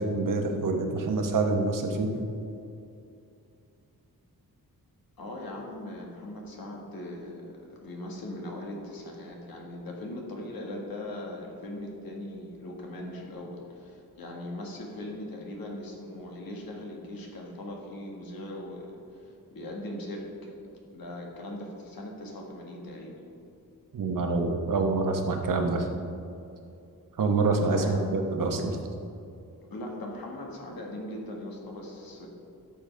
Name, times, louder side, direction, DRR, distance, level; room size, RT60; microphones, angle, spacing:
voice 1, 0.0-2.1 23.9-25.9 27.2-28.8, right 3 dB, 60° right, 3 dB, 1.0 m, -26 dB
voice 2, 5.2-23.1 27.6-28.0 29.7-32.3, left 1 dB, 75° left, -1 dB, 1.6 m, -40 dB
12.0 x 6.9 x 3.3 m, 2.6 s
wide cardioid pair, 165°, 36 cm